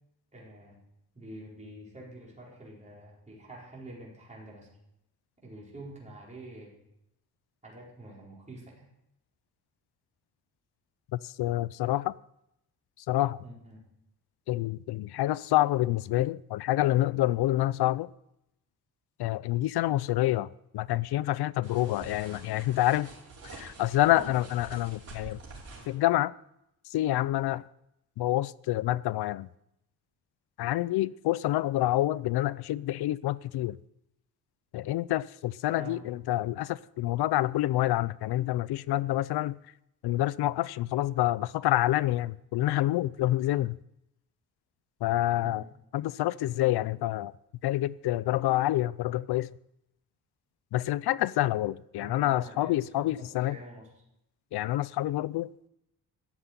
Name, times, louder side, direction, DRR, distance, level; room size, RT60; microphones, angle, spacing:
voice 1, 0.3-0.8 1.1-4.7 5.4-6.8 7.6-8.9 13.4-13.9 35.7-36.0 45.4-45.7 52.0-53.9, right 2 dB, 20° right, 4.4 m, -46 dB
voice 2, 11.1-12.1 13.1-13.4 14.5-18.1 19.2-20.5 20.7-23.1 23.5-25.4 25.9-26.3 26.9-27.6 28.2-29.5 30.6-33.8 34.7-39.6 40.0-43.8 45.0-45.6 45.9-47.3 47.6-49.5 50.7-53.6 54.5-55.5, left 15 dB, 85° left, 0.6 m, -27 dB
sound 1, 21.6-26.0, right 3 dB, 40° right, 5.1 m, -46 dB
14.0 x 7.9 x 9.3 m
wide cardioid pair, 170°, 38 cm